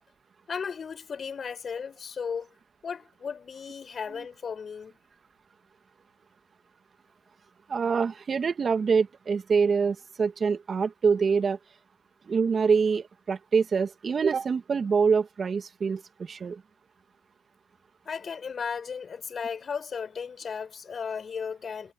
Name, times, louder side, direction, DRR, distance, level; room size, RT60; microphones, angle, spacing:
voice 1, 0.5-2.5 2.8-4.9 18.0-21.9, left 6 dB, 35° left, 4.7 m, -35 dB
voice 2, 7.7-11.6 12.3-16.6, right 5 dB, 35° right, 2.2 m, -25 dB
supercardioid pair, 90°, 0 cm